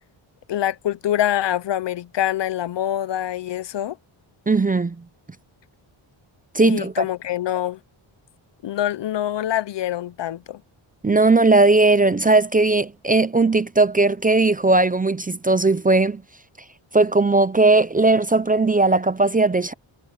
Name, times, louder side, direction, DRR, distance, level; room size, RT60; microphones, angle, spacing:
voice 1, 0.5-4.0 6.6-7.8 8.6-10.6, left 11 dB, 60° left, 0.7 m, -25 dB
voice 2, 4.5-5.0 6.5-6.9 11.0-16.2 16.9-19.7, right 3 dB, 15° right, 0.5 m, -18 dB
wide cardioid pair, 135°, 49 cm